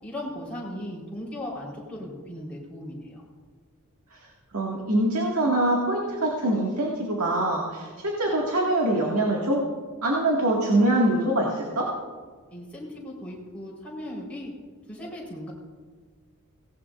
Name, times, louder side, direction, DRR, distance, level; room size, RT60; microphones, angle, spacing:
voice 1, 0.0-3.2 12.5-14.5 14.9-15.5, left 1 dB, 5° left, -6 dB, 4.1 m, -37 dB
voice 2, 4.5-9.6 10.0-11.9, right 1 dB, 80° right, -2 dB, 2.0 m, -24 dB
18.5 x 17.5 x 2.5 m, 1.5 s
head